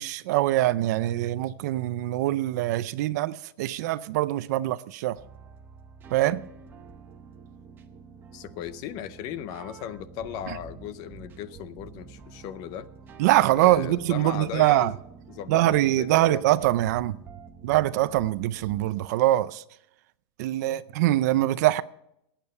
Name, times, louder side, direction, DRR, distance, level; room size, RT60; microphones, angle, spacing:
voice 1, 0.0-5.2 6.1-6.4 10.5-10.6 13.2-14.9 15.5-17.2 17.6-19.6 20.4-21.8, right 15 dB, 45° right, 0.4 m, -23 dB
sound 1, 5.1-19.1, right 5 dB, 15° right, 0.8 m, -47 dB
voice 2, 8.3-12.9 13.6-15.0 15.3-16.4, left 10 dB, 30° left, 0.6 m, -37 dB
18.5 x 9.0 x 5.5 m
supercardioid pair, 180°, 13 cm